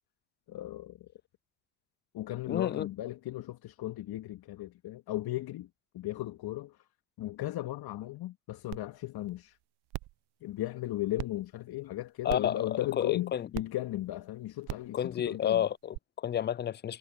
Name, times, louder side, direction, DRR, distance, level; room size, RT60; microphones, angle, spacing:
voice 1, 0.5-1.0 2.1-5.7 5.9-6.8 7.2-9.6 10.4-15.6, left 15 dB, 50° left, 2.3 m, -36 dB
voice 2, 2.5-2.9 12.2-13.5 14.9-17.0, left 9 dB, 25° left, 0.4 m, -31 dB
sound 1, 8.7-8.8 9.3-9.4 9.9-10.2 11.2-11.3 12.3-12.6 13.5-13.6 14.6-14.9 15.9-16.0, right 20 dB, 50° right, 1.0 m, -37 dB
hypercardioid pair, 75°, 49 cm